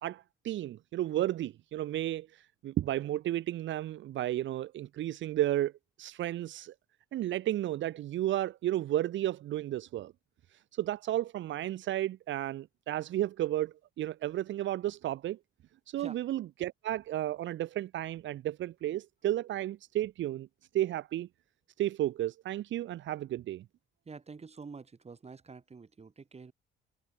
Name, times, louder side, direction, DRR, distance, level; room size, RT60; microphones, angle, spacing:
voice 1, 0.0-5.7 6.0-6.7 7.1-10.1 10.8-15.4 15.9-20.5 20.7-21.3 21.8-23.6, right 13 dB, 70° right, 0.9 m, -33 dB
voice 2, 24.0-26.5, right 4 dB, 30° right, 4.2 m, -48 dB
cardioid pair, 90°, 20 cm